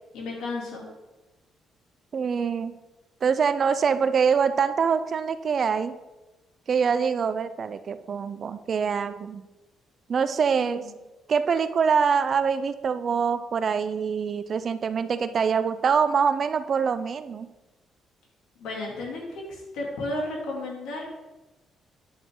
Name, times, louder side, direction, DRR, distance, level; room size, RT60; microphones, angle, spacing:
voice 1, 0.1-0.8 10.6-10.9 18.6-21.0, left 2 dB, 85° left, -1 dB, 2.9 m, -33 dB
voice 2, 2.1-2.7 3.2-5.9 6.7-9.4 10.1-10.9 11.3-17.5, right 6 dB, 50° right, 12 dB, 0.6 m, -24 dB
9.8 x 7.7 x 3.9 m, 1.1 s
cardioid pair, 90°, 0 cm